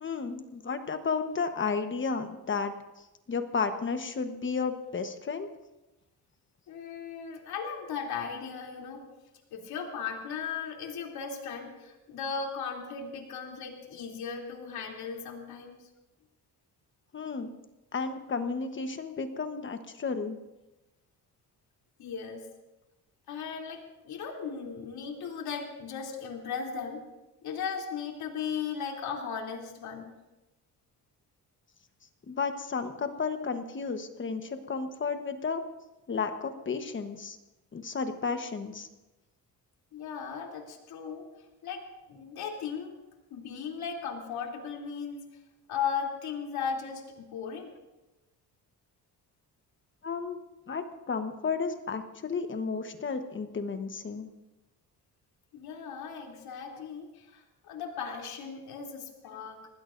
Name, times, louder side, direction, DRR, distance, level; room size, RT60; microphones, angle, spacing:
voice 1, 0.0-2.7 3.3-5.5 17.1-17.5 17.9-20.4 32.3-35.6 36.1-37.4 37.7-38.9 50.0-50.4 50.7-54.3 59.3-59.4, left 5 dB, 30° left, 7 dB, 1.2 m, -32 dB
voice 2, 6.7-9.0 9.5-15.8 22.0-22.5 23.3-27.0 27.4-30.1 39.9-41.2 41.6-42.9 43.3-45.2 45.7-47.7 55.5-59.7, left 6 dB, 85° left, 0 dB, 3.2 m, -37 dB
25.5 x 19.5 x 2.6 m, 1.0 s
cardioid pair, 140°, 36 cm